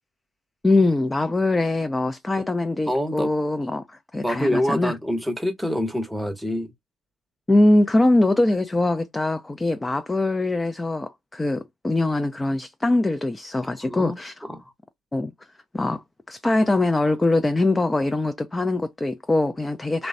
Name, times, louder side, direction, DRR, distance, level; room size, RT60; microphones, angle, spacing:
voice 1, 0.6-4.9 7.5-14.5 15.1-15.3 15.7-20.1, left 2 dB, 15° left, 0.4 m, -22 dB
voice 2, 2.9-3.3 4.2-6.7 13.8-14.2 14.5-14.6, equal, ahead, 0.8 m, -26 dB
3.0 x 2.1 x 2.6 m
hypercardioid pair, 65°, 0 cm